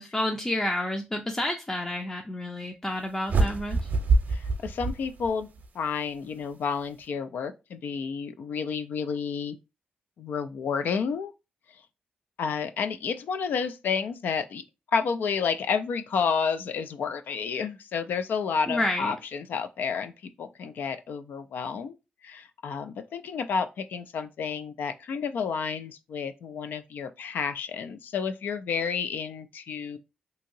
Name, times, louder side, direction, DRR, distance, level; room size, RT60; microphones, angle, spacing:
voice 1, 0.0-3.9 18.7-19.2, left 1 dB, 20° left, 0.4 m, -30 dB
sound 1, 3.3-5.7, right 3 dB, 60° right, 0.6 m, -25 dB
voice 2, 4.3-5.5 5.7-9.6 10.2-11.3 12.4-14.6 14.9-20.1 20.4-22.0 22.2-30.0, left 6 dB, 80° left, 0.3 m, -30 dB
2.8 x 2.8 x 2.6 m
cardioid pair, 75°, 3 cm